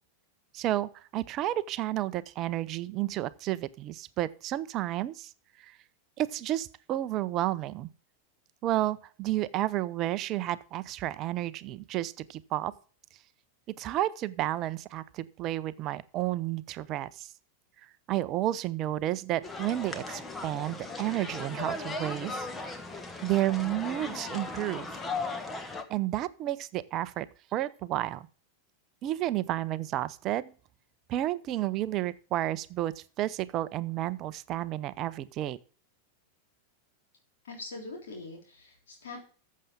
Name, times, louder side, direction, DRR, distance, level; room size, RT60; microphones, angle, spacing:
voice 1, 0.5-5.3 5.6-5.7 6.2-7.9 8.6-12.7 13.8-17.3 18.1-22.5 23.2-24.9 25.9-28.3 29.0-30.5 31.1-35.6, right 14 dB, 35° right, 0.6 m, -31 dB
sound 1, 19.4-25.8, left 3 dB, 15° left, 1.3 m, -37 dB
voice 2, 37.4-39.2, left 3 dB, 60° left, 3.4 m, -43 dB
14.0 x 7.5 x 3.7 m
figure-of-eight pair, 90°, 0 cm